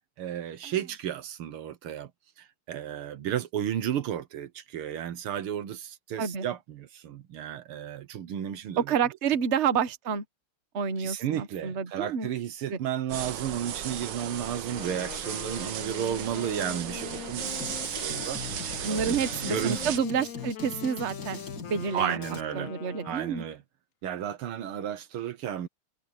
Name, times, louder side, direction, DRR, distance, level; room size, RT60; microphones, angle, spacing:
voice 1, 0.2-2.1 2.4-8.8 11.0-17.5 18.0-18.4 18.8-19.2 19.5-19.8 21.9-22.7 23.1-23.6 24.0-25.7, right 10 dB, 75° right, 2.0 m, -33 dB
voice 2, 8.8-10.2 10.7-12.3 12.7-12.8 18.8-21.4 21.7-22.2 22.5-23.5, right 7 dB, 35° right, 1.3 m, -29 dB
sound 1, 13.1-20.0, right 9 dB, 60° right, 1.6 m, -35 dB
Wind instrument woodwind instrument, 14.6-23.6, left 10 dB, 65° left, 0.8 m, -43 dB
Drum kit, 17.4-22.4, left 5 dB, 45° left, 3.3 m, -41 dB
omnidirectional pair, 2.4 m